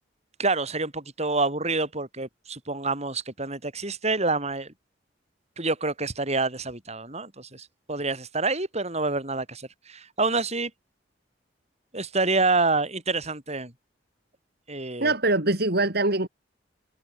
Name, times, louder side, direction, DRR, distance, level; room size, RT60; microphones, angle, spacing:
voice 1, 0.4-4.7 5.6-10.7 11.9-13.7 14.7-15.1, right 3 dB, 35° right, 7.7 m, -27 dB
voice 2, 15.0-16.3, right 2 dB, 60° right, 4.1 m, -23 dB
head